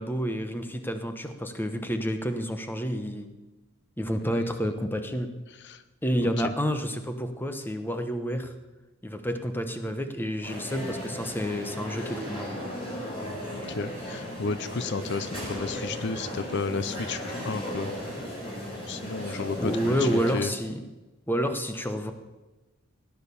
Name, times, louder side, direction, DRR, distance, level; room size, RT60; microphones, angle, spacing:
voice 1, 0.0-3.3 4.0-5.3 6.0-8.5 9.0-13.0 19.2-20.8 21.3-22.1, equal, 10° left, 7 dB, 1.1 m, -29 dB
voice 2, 4.1-4.5 5.6-5.8 6.2-6.5 13.5-17.9 18.9-20.1 20.3-20.5, left 4 dB, 55° left, 13 dB, 0.6 m, -33 dB
sound 1, 10.4-20.4, equal, 25° left, 4.9 m, -36 dB
17.0 x 10.5 x 7.0 m, 1.1 s
head